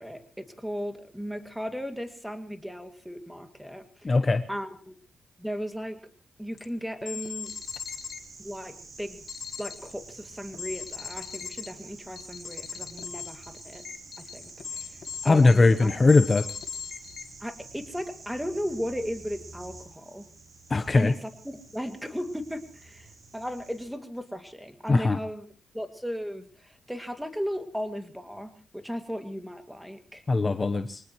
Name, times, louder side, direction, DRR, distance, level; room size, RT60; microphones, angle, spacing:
voice 1, 0.0-4.2 4.5-4.9 5.4-6.0 6.4-7.5 8.4-9.2 9.6-13.8 14.2-15.9 17.4-20.3 20.9-25.5 25.7-30.2, equal, ahead, 7 dB, 2.3 m, -36 dB
voice 2, 4.0-4.4 15.2-16.4 20.7-21.1 24.9-25.2 30.3-31.0, left 3 dB, 35° left, 9 dB, 0.9 m, -20 dB
sound 1, 6.6-6.7 7.0-8.2 9.3-9.9 10.5-11.7 12.2-17.3, left 7 dB, 70° left, 1.4 m, -39 dB
sound 2, 7.4-23.8, right 3 dB, 60° right, 6.1 m, -49 dB
24.0 x 19.5 x 3.1 m, 0.41 s
cardioid pair, 60°, 0 cm